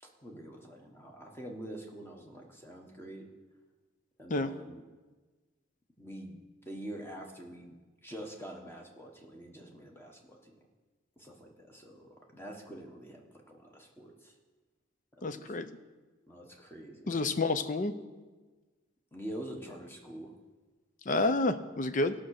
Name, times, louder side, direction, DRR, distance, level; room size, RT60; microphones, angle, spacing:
voice 1, 0.0-3.3 4.2-4.8 6.0-6.4 6.6-7.8 8.0-10.5 11.2-14.3 15.2-15.6 16.3-17.3 19.1-20.3, right 1 dB, 10° left, 1 dB, 1.3 m, -46 dB
voice 2, 15.2-15.7 17.1-17.9 21.1-22.1, left 2 dB, 40° left, 11 dB, 0.6 m, -29 dB
15.5 x 6.1 x 6.5 m, 1.3 s
head